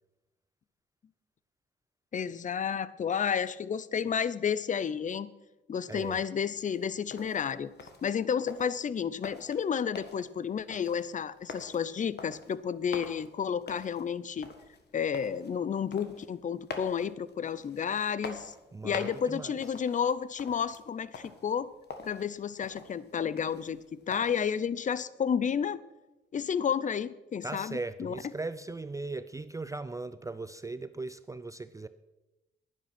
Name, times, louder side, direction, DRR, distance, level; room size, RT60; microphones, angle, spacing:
voice 1, 2.1-5.3 5.7-7.7 8.0-14.5 14.9-18.5 18.8-21.7 22.0-25.8 26.3-28.1, left 7 dB, 45° left, 17 dB, 0.5 m, -31 dB
voice 2, 5.9-6.2 18.7-19.6 27.4-31.9, right 3 dB, 15° right, 13 dB, 0.4 m, -38 dB
sound 1, 6.6-24.6, left 4 dB, 60° left, 1.5 m, -47 dB
11.0 x 10.0 x 6.0 m, 1.0 s
cardioid pair, 105°, 19 cm